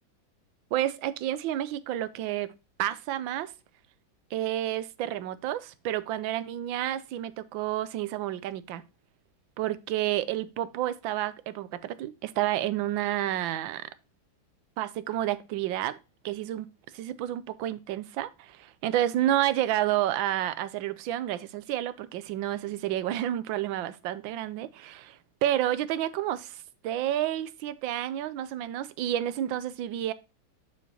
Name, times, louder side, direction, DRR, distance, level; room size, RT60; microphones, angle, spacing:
voice 1, 0.7-2.5 2.8-3.5 4.3-8.8 9.6-13.9 14.8-16.0 16.2-30.1, right 12 dB, 85° right, 1.4 m, -30 dB
7.2 x 6.9 x 2.8 m
omnidirectional pair, 2.1 m